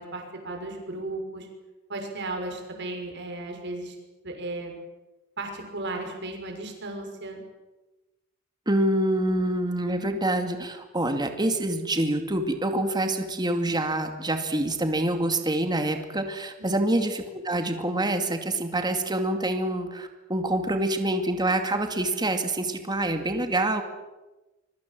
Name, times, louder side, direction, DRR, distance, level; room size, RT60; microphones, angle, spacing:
voice 1, 0.0-1.5 1.9-4.0 4.2-4.8 5.4-7.4 16.6-16.9, right 2 dB, 55° right, 3 dB, 6.2 m, -35 dB
voice 2, 8.7-23.8, right 1 dB, 20° right, 6 dB, 2.4 m, -26 dB
25.5 x 23.0 x 7.8 m, 1.1 s
head